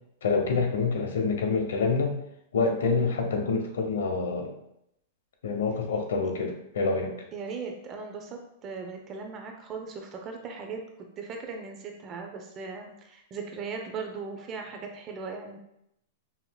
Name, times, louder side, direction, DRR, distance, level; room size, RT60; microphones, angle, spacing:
voice 1, 0.2-2.1 2.5-4.5 5.4-7.1, left 4 dB, 90° left, 3 dB, 0.8 m, -27 dB
voice 2, 7.3-15.6, right 4 dB, 25° right, 3 dB, 0.6 m, -38 dB
5.6 x 2.8 x 2.3 m, 0.78 s
supercardioid pair, 150°, 0 cm